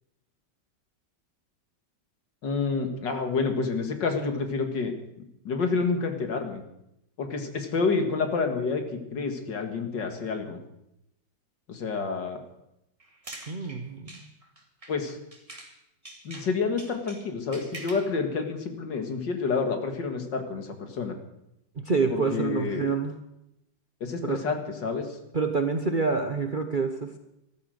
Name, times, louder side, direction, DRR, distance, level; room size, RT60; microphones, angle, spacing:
voice 1, 2.4-4.9 5.4-6.6 7.2-10.6 11.7-12.4 14.9-15.2 16.2-21.2 22.1-22.9 24.0-25.1, left 4 dB, 70° left, 5 dB, 2.5 m, -29 dB
sound 1, 13.0-15.8 16.0-18.1, right 2 dB, 20° right, 2.0 m, -45 dB
voice 2, 13.5-14.3 21.8-23.1 24.2-24.4 25.3-27.2, right 4 dB, 35° right, 5 dB, 0.9 m, -27 dB
14.0 x 13.0 x 6.6 m, 0.83 s
omnidirectional pair, 2.0 m